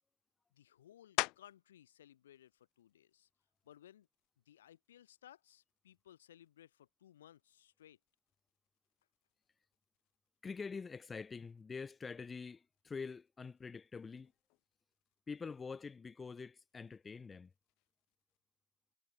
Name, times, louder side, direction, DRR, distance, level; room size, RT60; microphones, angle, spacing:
voice 1, 0.5-3.3 3.6-4.1 4.4-8.0, left 11 dB, 80° left, 3.1 m, -61 dB
sound 1, 1.2-1.8 2.3-6.7 7.3-12.4 12.7-18.4, left 28 dB, 55° left, 0.4 m, -48 dB
voice 2, 10.4-14.3 15.3-17.5, left 5 dB, 20° left, 2.4 m, -45 dB
hypercardioid pair, 95°, 0 cm